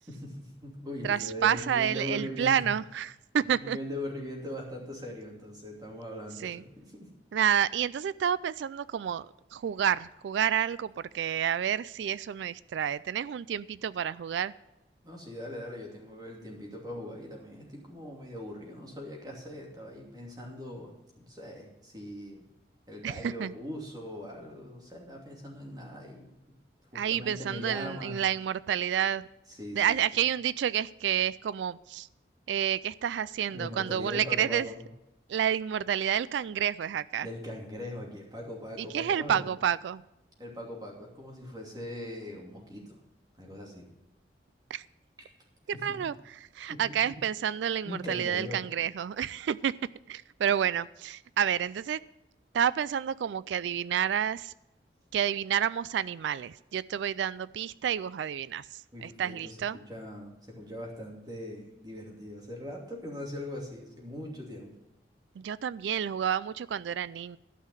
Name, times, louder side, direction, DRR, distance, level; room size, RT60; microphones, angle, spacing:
voice 1, 0.1-2.6 3.5-7.1 15.0-22.4 22.9-26.3 26.9-28.2 29.6-30.0 33.5-34.8 37.2-39.5 40.4-43.0 43.4-43.8 45.7-45.8 46.7-47.1 47.8-48.6 58.9-64.8, left 1 dB, 20° right, -1 dB, 2.6 m, -40 dB
voice 2, 1.0-3.8 6.4-6.6 7.3-9.3 9.5-14.5 23.0-23.5 26.9-29.2 29.7-32.1 32.5-34.7 35.3-37.3 38.8-40.0 44.7-44.8 45.7-49.7 50.1-52.0 52.5-54.5 55.1-59.8 65.4-67.4, right 9 dB, 80° right, 19 dB, 0.3 m, -29 dB
12.5 x 5.7 x 9.0 m, 0.90 s
head